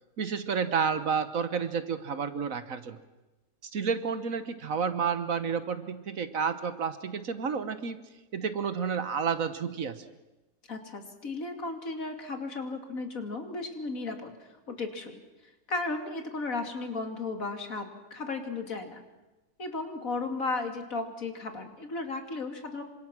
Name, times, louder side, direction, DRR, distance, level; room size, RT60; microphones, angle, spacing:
voice 1, 0.2-3.0 3.7-8.0 8.3-10.0, right 6 dB, 60° right, 11 dB, 1.6 m, -30 dB
voice 2, 10.7-15.2 15.7-19.0 19.6-22.8, left 3 dB, 60° left, 5 dB, 2.8 m, -35 dB
27.0 x 25.5 x 6.2 m, 1.1 s
omnidirectional pair, 1.6 m